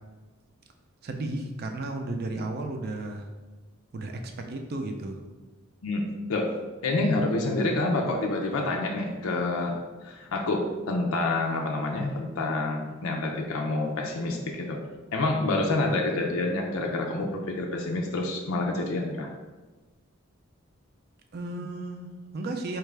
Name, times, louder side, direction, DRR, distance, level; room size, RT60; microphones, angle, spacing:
voice 1, 1.0-3.3 3.9-4.2 4.5-5.2 15.5-15.6 21.3-22.8, right 2 dB, 50° right, 4 dB, 0.4 m, -34 dB
voice 2, 5.8-6.5 6.8-9.8 10.0-14.8 15.1-19.3, left 2 dB, 85° left, 1 dB, 0.5 m, -28 dB
4.4 x 2.4 x 3.2 m, 1.2 s
head